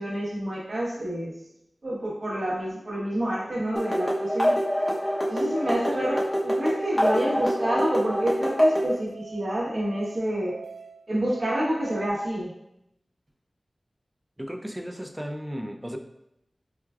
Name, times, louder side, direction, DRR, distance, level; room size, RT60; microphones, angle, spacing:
voice 1, 0.0-1.3 1.8-4.5 5.3-10.6 11.1-12.5, right 1 dB, 70° right, -6 dB, 1.0 m, -28 dB
sound 1, 3.8-8.9, equal, 30° left, 0.8 m, -25 dB
Musical instrument, 8.4-12.0, right 6 dB, 90° left, 0.7 m, -46 dB
voice 2, 14.4-16.0, equal, 10° right, 5 dB, 0.3 m, -35 dB
4.5 x 2.2 x 2.3 m, 0.82 s
wide cardioid pair, 55°, 0 cm